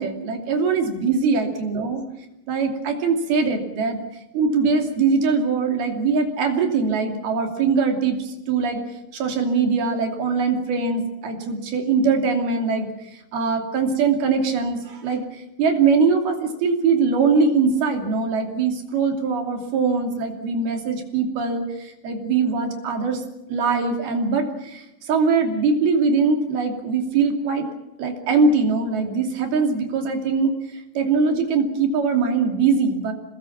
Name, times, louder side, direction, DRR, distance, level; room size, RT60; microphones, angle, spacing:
voice 1, 0.0-2.0 2.5-4.0 4.3-8.8 9.1-23.2 23.5-27.7 28.0-33.1, right 4 dB, 85° right, 3 dB, 4.8 m, -22 dB
26.5 x 20.0 x 7.2 m, 0.91 s
omnidirectional pair, 4.3 m